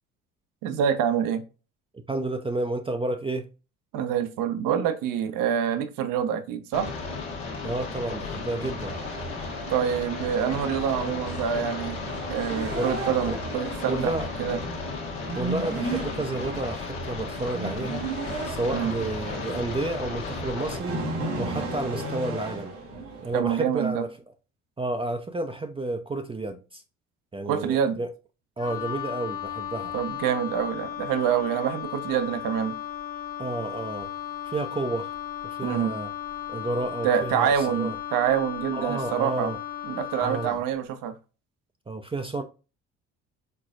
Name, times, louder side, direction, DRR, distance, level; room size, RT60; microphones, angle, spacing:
voice 1, 0.6-1.4 3.9-6.9 9.7-12.0 12.3-14.1 14.4-14.6 18.7-18.9 23.3-24.0 27.5-28.0 29.9-32.7 35.6-35.9 37.0-39.5 39.9-41.1, right 8 dB, 65° right, 0.8 m, -26 dB
voice 2, 2.1-3.5 7.6-9.0 12.7-13.0 13.2-13.4 13.9-14.3 15.3-18.1 18.4-21.0 21.4-22.8 23.2-24.2 24.8-26.8 27.3-28.1 28.6-29.9 33.4-34.1 34.5-35.1 35.4-36.1 36.5-38.0 38.7-39.6 40.2-40.6 41.9-42.4, right 2 dB, 15° right, 0.5 m, -31 dB
sound 1, 6.7-20.8, left 3 dB, 80° left, 1.2 m, -34 dB
sound 2, 8.8-23.3, right 2 dB, 85° right, 1.4 m, -35 dB
Wind instrument woodwind instrument, 28.6-40.7, left 10 dB, 60° left, 1.3 m, -35 dB
4.5 x 4.1 x 2.4 m
hypercardioid pair, 55°, 36 cm